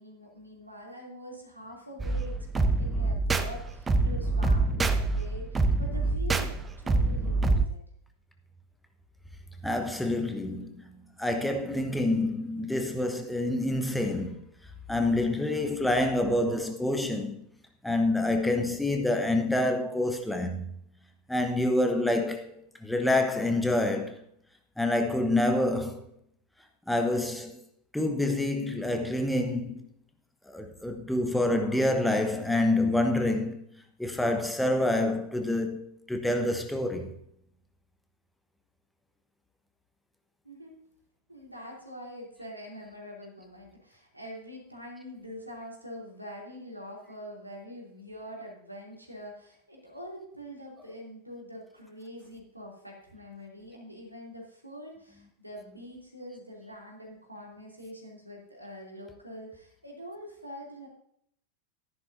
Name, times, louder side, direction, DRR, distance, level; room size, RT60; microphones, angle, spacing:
voice 1, 0.0-7.8 40.4-40.7 41.3-60.9, equal, 85° right, 3.0 m, -44 dB
sound 1, 2.0-7.7, right 3 dB, 15° right, 0.8 m, -26 dB
voice 2, 9.6-14.4 14.9-17.4 17.8-20.7 21.3-22.5 22.8-24.2 24.8-26.1 26.9-27.6 27.9-29.9 30.5-33.6 34.0-37.2, left 1 dB, 5° left, 1.1 m, -27 dB
13.5 x 10.5 x 2.7 m
figure-of-eight pair, 90°, 0 cm